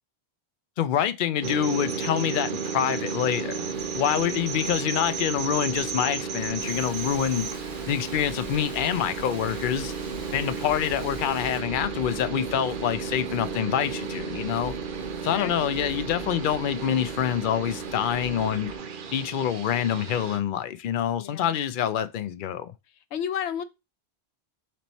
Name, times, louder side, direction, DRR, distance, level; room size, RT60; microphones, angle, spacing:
voice 1, 0.8-3.7 3.9-7.5 7.9-9.9 10.3-14.8 15.2-18.7 19.1-22.7, left 10 dB, 60° left, 0.6 m, -26 dB
sound 1, 1.4-20.4, right 6 dB, 55° right, 0.7 m, -33 dB
sound 2, 3.4-18.8, equal, 40° left, 1.5 m, -46 dB
Frying (food), 6.6-11.6, right 1 dB, 20° right, 1.0 m, -46 dB
voice 2, 15.1-15.8 21.2-21.6 23.1-23.6, left 9 dB, 90° left, 0.9 m, -33 dB
4.4 x 3.0 x 4.0 m
omnidirectional pair, 1.1 m